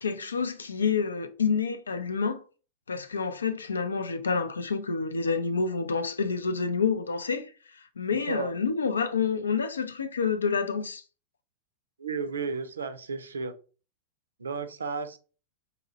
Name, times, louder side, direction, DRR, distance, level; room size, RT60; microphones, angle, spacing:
voice 1, 0.0-2.4 2.9-11.0, left 5 dB, 75° left, 0.4 m, -28 dB
voice 2, 12.0-13.5 14.4-15.2, right 5 dB, 70° right, 0.4 m, -33 dB
4.0 x 2.8 x 2.6 m
figure-of-eight pair, 90°, 0 cm